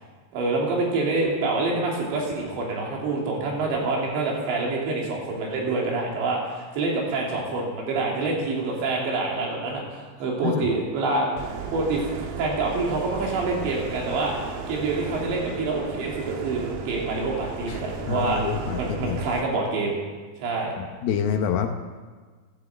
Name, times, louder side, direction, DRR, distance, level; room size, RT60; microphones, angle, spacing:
voice 1, 0.3-11.3 11.7-12.0 12.4-14.3 14.7-18.4 18.8-20.0 20.4-20.7, right 3 dB, 85° right, -2 dB, 5.2 m, -26 dB
voice 2, 10.4-10.7 17.7-17.8 18.1-19.2 20.8-21.7, left 8 dB, 75° left, 6 dB, 2.5 m, -27 dB
sound 1, 11.4-19.4, right 5 dB, 70° right, 2.9 m, -35 dB
14.5 x 12.0 x 7.6 m, 1.5 s
omnidirectional pair, 5.0 m